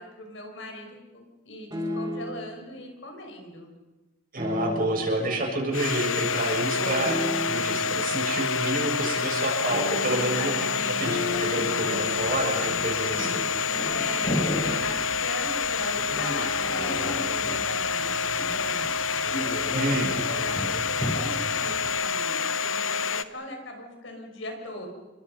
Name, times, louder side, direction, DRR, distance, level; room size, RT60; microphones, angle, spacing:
voice 1, 0.0-3.7 6.7-7.2 10.1-11.1 13.8-24.9, left 2 dB, 70° left, 3 dB, 6.0 m, -39 dB
sound 1, 1.7-2.5 4.4-5.2 7.0-7.9 9.7-12.4, left 2 dB, 20° right, 6.1 m, -33 dB
voice 2, 4.3-7.2 7.5-10.5 11.0-13.5 19.7-20.1, right 1 dB, 50° right, 0 dB, 7.1 m, -28 dB
Domestic sounds home sounds, 5.7-23.2, left 5 dB, 90° left, 1.0 m, -28 dB
sound 2, 11.1-21.9, left 1 dB, 35° left, 6.9 m, -35 dB
29.5 x 24.0 x 5.6 m, 1.1 s
head